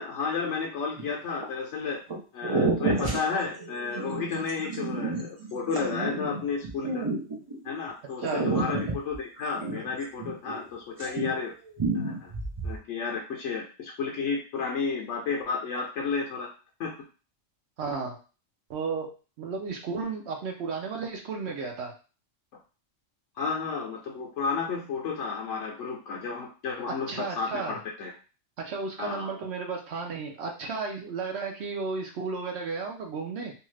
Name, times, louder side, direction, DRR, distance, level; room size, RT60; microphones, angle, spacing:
voice 1, 0.0-2.0 2.3-7.0 7.6-11.5 11.9-12.3 12.6-16.5 16.8-16.9 23.4-28.1 29.0-29.4, left 5 dB, 70° left, -1 dB, 0.9 m, -32 dB
sound 1, 1.0-1.4 2.1-2.2 2.4-7.7 8.2-10.7 10.9-11.5 11.8-12.8, right 3 dB, 35° right, 0.4 m, -30 dB
voice 2, 17.8-18.2 18.7-19.1 19.4-21.9 27.1-27.8 28.6-33.5, right 4 dB, 65° right, 2 dB, 0.8 m, -33 dB
2.7 x 2.4 x 3.1 m, 0.35 s
omnidirectional pair, 1.3 m